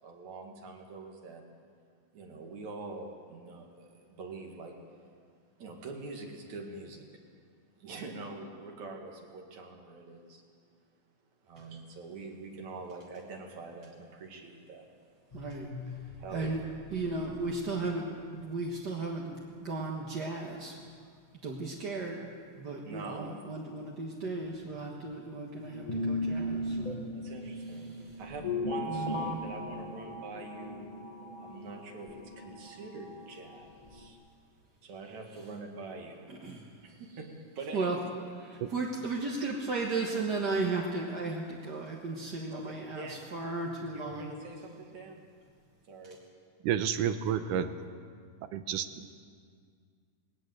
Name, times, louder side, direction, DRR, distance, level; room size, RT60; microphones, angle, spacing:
voice 1, 0.0-1.5 2.1-4.8 5.6-7.1 7.8-10.4 11.4-14.9 16.2-16.6 22.8-23.4 27.1-30.9 31.4-34.2 34.8-36.6 36.8-38.0 42.5-43.3 43.9-45.2 45.9-46.3 47.3-47.4, right 3 dB, 60° right, 2 dB, 3.4 m, -45 dB
sound 1, 15.3-17.9 18.3-18.4 18.7-18.8 24.4-24.5 24.7-25.0 25.6-34.1, left 1 dB, 25° left, 0.7 m, -38 dB
voice 2, 15.3-15.7 16.3-16.6 16.9-19.3 19.6-20.7 21.4-22.3 22.6-26.9 28.9-29.4 36.3-36.6 37.7-38.0 38.4-44.3, right 3 dB, 45° right, -2 dB, 1.5 m, -35 dB
voice 3, 46.6-47.7 48.5-49.1, right 9 dB, 80° right, 10 dB, 2.3 m, -30 dB
19.5 x 18.5 x 7.9 m, 2.1 s
omnidirectional pair, 3.7 m